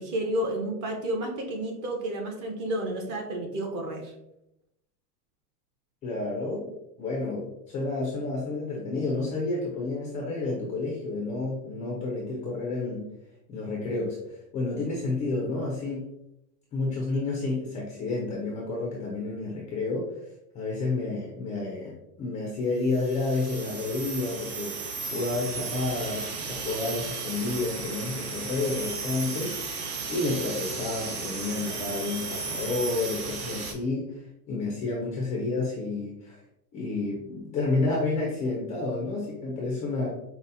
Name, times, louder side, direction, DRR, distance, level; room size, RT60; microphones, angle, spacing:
voice 1, 0.0-4.1, right 1 dB, 40° right, 2 dB, 0.9 m, -31 dB
voice 2, 6.0-6.7 7.0-13.1 13.5-16.1 16.7-20.1 20.5-21.9 22.2-24.7 25.0-29.6 30.1-34.2 34.5-36.4 36.7-40.1, left 3 dB, 15° left, -2 dB, 0.3 m, -30 dB
sound 1, 22.9-33.7, right 4 dB, 65° right, 1.0 m, -35 dB
5.3 x 2.1 x 2.6 m, 0.84 s
supercardioid pair, 125°, 49 cm